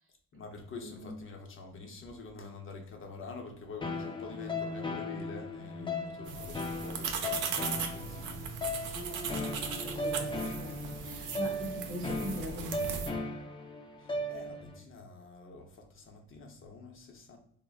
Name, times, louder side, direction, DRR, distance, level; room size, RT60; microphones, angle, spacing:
voice 1, 0.3-9.0 11.0-11.4 14.0-17.4, left 3 dB, 45° left, 3 dB, 0.7 m, -47 dB
voice 2, 0.8-1.1 5.8-6.4 8.7-8.9 9.3-13.1, equal, 45° right, 2 dB, 0.9 m, -42 dB
sound 1, 3.8-14.8, left 2 dB, 15° left, 0.4 m, -37 dB
sound 2, 6.3-13.1, right 6 dB, 80° right, 0.5 m, -38 dB
3.4 x 2.1 x 2.4 m, 0.67 s
cardioid pair, 90°, 30 cm